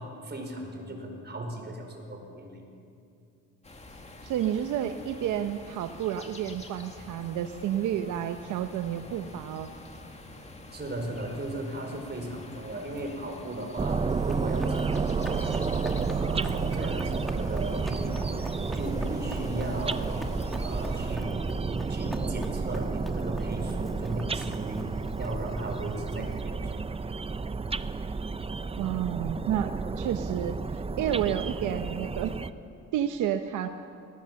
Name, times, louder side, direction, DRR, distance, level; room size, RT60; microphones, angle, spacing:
voice 1, 0.0-2.6 10.7-20.1 20.6-21.4 21.9-24.9 25.2-26.8, right 1 dB, 35° right, 2 dB, 5.0 m, -37 dB
sound 1, 3.6-21.2, left 2 dB, 20° left, 2.4 m, -46 dB
voice 2, 4.2-9.7 26.2-26.3 28.8-32.4 32.9-33.7, right 10 dB, 85° right, 8 dB, 0.9 m, -30 dB
sound 2, 13.8-32.5, right 4 dB, 20° right, 0.6 m, -31 dB
Run, 14.1-26.4, equal, ahead, 1.8 m, -44 dB
19.0 x 18.0 x 7.7 m, 2.5 s
cardioid pair, 90°, 30 cm